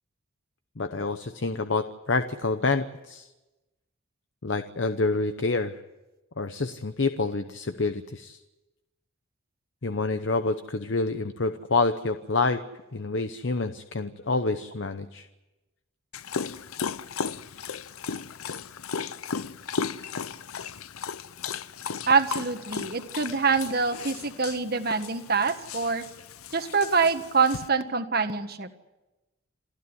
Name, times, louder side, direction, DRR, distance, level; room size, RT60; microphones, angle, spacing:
voice 1, 0.8-3.3 4.4-5.8 6.4-8.4 9.8-12.6 12.9-15.3, left 3 dB, 60° left, 9 dB, 0.8 m, -27 dB
Dog, 16.1-27.7, left 6 dB, 85° left, 0.7 m, -36 dB
voice 2, 22.1-26.1 26.5-28.7, right 4 dB, 45° right, 8 dB, 1.6 m, -25 dB
28.0 x 14.0 x 9.8 m, 1.1 s
head